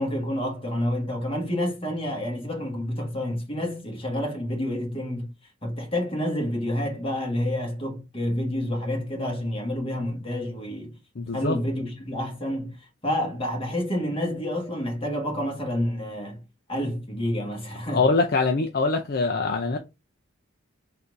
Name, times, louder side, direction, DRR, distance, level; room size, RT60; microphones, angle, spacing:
voice 1, 0.0-5.3 5.6-11.0 11.3-18.0, left 1 dB, 25° left, 1.5 m, -29 dB
voice 2, 11.2-11.6 17.9-19.8, left 3 dB, 50° left, 0.5 m, -23 dB
4.1 x 2.7 x 4.6 m
head